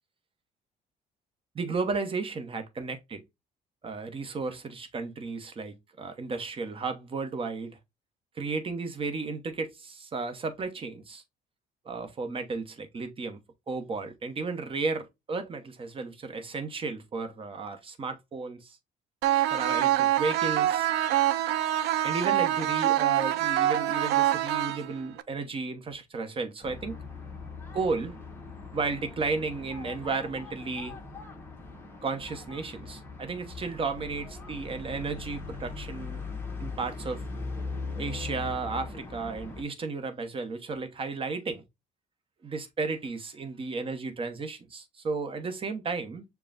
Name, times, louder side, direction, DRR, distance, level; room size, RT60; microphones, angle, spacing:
voice 1, 1.5-3.2 3.8-7.7 8.4-11.2 11.8-13.4 13.7-18.8 19.5-20.9 22.0-27.0 27.7-28.2 28.7-31.0 32.0-36.3 36.6-37.2 38.0-41.6 42.4-46.2, right 4 dB, 30° right, 0.9 m, -33 dB
sound 1, 19.2-25.2, right 12 dB, 80° right, 0.4 m, -25 dB
sound 2, 26.6-39.6, left 3 dB, 10° left, 1.1 m, -40 dB
6.7 x 2.3 x 2.5 m
cardioid pair, 110°, 17 cm